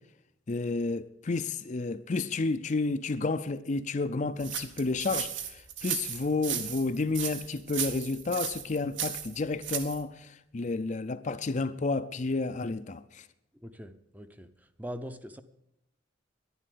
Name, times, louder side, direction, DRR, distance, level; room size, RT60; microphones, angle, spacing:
voice 1, 0.5-13.3, left 3 dB, 40° left, 0.5 m, -31 dB
sound 1, 4.4-10.0, right 9 dB, 70° right, 1.5 m, -35 dB
voice 2, 13.5-14.5 14.8-15.4, equal, 10° right, 0.6 m, -41 dB
11.0 x 11.0 x 8.4 m
head